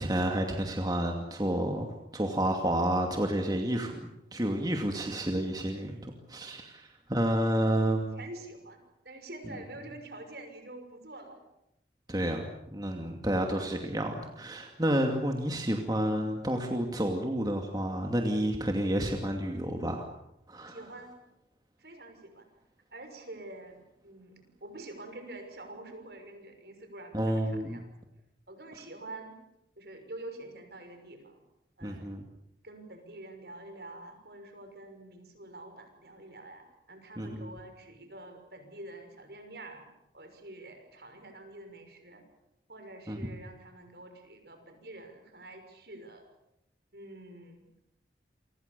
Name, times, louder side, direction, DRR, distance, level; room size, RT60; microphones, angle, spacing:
voice 1, 0.0-8.2 9.5-9.6 12.1-20.0 20.5-20.8 27.1-27.8 31.8-32.3 37.2-37.5 43.1-43.2, right 1 dB, 20° right, 3 dB, 2.4 m, -30 dB
voice 2, 8.2-11.4 20.7-21.1 21.8-22.5 22.9-27.9 28.5-29.4 29.8-31.4 31.8-32.1 32.6-39.9 40.1-42.2 42.7-46.2 46.9-47.6, right 2 dB, 65° right, 6 dB, 6.3 m, -47 dB
28.5 x 25.0 x 6.9 m, 0.80 s
head